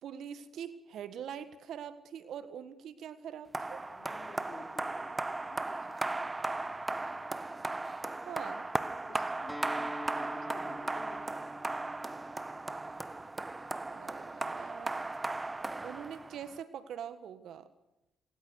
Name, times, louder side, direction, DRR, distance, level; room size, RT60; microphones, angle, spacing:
voice 1, 0.0-3.8 8.2-8.6 13.9-15.0 15.8-17.7, right 8 dB, 65° right, 13 dB, 1.6 m, -43 dB
sound 1, 3.5-16.6, right 2 dB, 25° right, 1.4 m, -37 dB
voice 2, 3.9-7.3 9.1-11.7, left 4 dB, 60° left, 2 dB, 4.8 m, -54 dB
Acoustic guitar, 9.5-14.7, equal, 10° right, 2.5 m, -47 dB
26.5 x 21.0 x 6.5 m, 0.95 s
hypercardioid pair, 45°, 0 cm